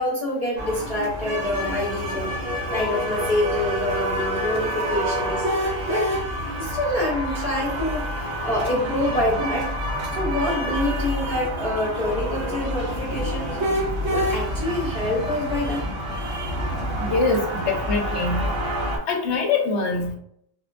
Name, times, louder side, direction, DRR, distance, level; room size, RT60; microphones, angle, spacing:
voice 1, 0.0-2.3 2.7-5.4 5.9-6.1 6.6-8.1 8.4-9.7 10.1-13.7 14.1-15.8, left 1 dB, 35° left, -6 dB, 0.8 m, -26 dB
sound 1, 0.6-19.0, equal, 75° right, 1.2 m, -27 dB
voice 2, 17.0-18.4 19.1-20.2, left 3 dB, 70° left, 4 dB, 0.8 m, -23 dB
3.8 x 2.1 x 2.4 m, 0.69 s
omnidirectional pair, 1.3 m